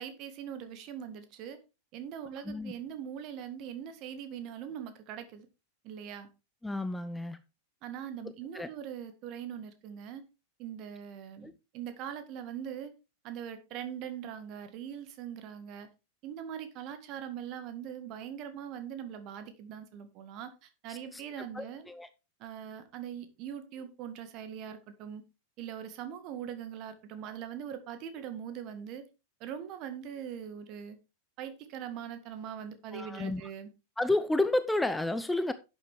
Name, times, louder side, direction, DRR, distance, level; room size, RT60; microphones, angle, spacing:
voice 1, 0.0-1.6 1.9-5.5 5.8-6.3 7.8-10.2 10.6-12.9 13.2-15.9 16.2-21.8 22.4-25.2 25.6-29.1 29.4-31.0 31.4-33.7, right 9 dB, 40° right, 1.8 m, -41 dB
voice 2, 6.6-7.4 8.5-8.7 11.4-11.5 20.9-21.2 21.5-22.1 32.9-33.4 34.0-35.5, left 2 dB, 5° left, 0.6 m, -31 dB
11.0 x 7.8 x 3.5 m
figure-of-eight pair, 90°, 0 cm